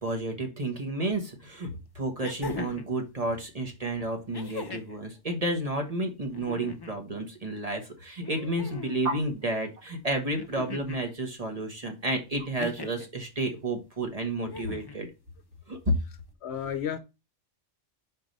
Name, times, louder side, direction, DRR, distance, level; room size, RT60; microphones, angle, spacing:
voice 1, 0.0-1.7 1.9-15.1 15.7-16.0, right 1 dB, 30° right, 1.4 m, -31 dB
sound 1, 1.1-1.2 2.2-2.9 4.3-5.0 6.3-7.0 8.2-9.0 10.4-11.1 12.6-13.1 14.4-15.0 16.3-16.4, left 4 dB, 30° left, 0.4 m, -39 dB
sound 2, 9.0-13.6, right 2 dB, 65° right, 1.7 m, -40 dB
voice 2, 16.4-17.0, left 9 dB, 65° left, 0.9 m, -32 dB
4.8 x 4.6 x 5.2 m
omnidirectional pair, 1.3 m